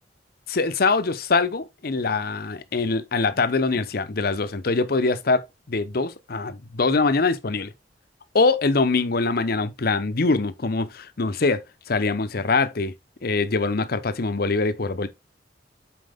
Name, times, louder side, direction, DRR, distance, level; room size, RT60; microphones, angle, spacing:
voice 1, 0.5-7.7 8.3-11.6 11.9-12.9 13.2-15.1, left 3 dB, 60° left, 0.8 m, -23 dB
7.7 x 4.6 x 3.4 m
head